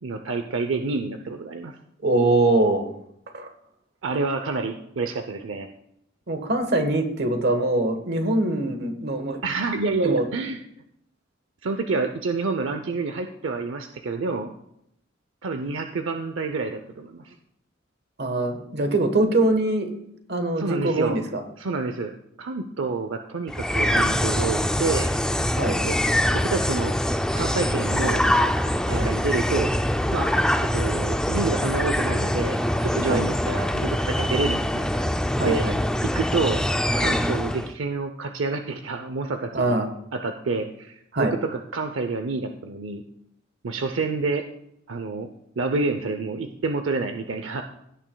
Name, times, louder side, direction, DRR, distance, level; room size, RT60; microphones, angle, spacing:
voice 1, 0.0-1.7 4.0-5.7 9.4-10.6 11.6-14.5 15.4-17.3 20.6-21.2 21.6-22.1 22.4-25.1 25.8-26.9 27.4-28.2 28.9-29.7 30.1-30.3 30.7-34.8 35.4-35.6 36.1-36.6 37.0-39.8 40.1-43.0 43.6-44.4 44.9-45.3 45.6-47.6, right 3 dB, 85° right, 6 dB, 0.6 m, -28 dB
voice 2, 2.0-2.8 3.3-3.5 6.3-9.4 10.0-10.3 18.2-19.9 20.3-21.4 25.6-25.8 28.9-29.1 33.1-33.3 35.4-35.8 39.5-39.9 41.1-41.3, right 2 dB, 60° right, 7 dB, 1.3 m, -23 dB
sound 1, 23.5-37.7, left 1 dB, 5° left, 0.3 m, -24 dB
16.5 x 9.1 x 2.3 m, 0.76 s
head